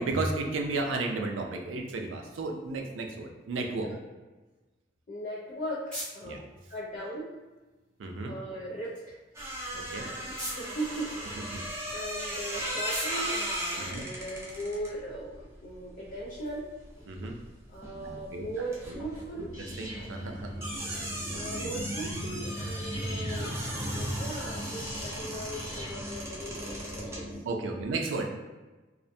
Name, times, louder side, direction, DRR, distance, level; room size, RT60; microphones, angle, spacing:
voice 1, 0.0-3.9 6.2-6.4 8.0-8.3 9.7-10.1 11.4-11.6 13.8-14.0 17.1-17.3 17.9-19.0 19.3-19.5 19.8-20.5 20.8-21.8 27.5-28.3, right 3 dB, 75° right, 3 dB, 0.4 m, -34 dB
voice 2, 5.1-6.4 6.7-7.3 8.3-9.2 10.0-13.4 13.7-16.7 17.7-19.5 21.3-23.5 23.9-27.8, right 1 dB, 45° left, -5 dB, 0.4 m, -39 dB
sound 1, 5.1-14.5, equal, 5° left, 0.9 m, -46 dB
sound 2, 9.3-17.5 17.7-27.2, right 1 dB, 15° right, 0.4 m, -38 dB
sound 3, 19.5-27.4, equal, 80° left, 0.8 m, -38 dB
2.4 x 2.1 x 2.6 m, 1.2 s
head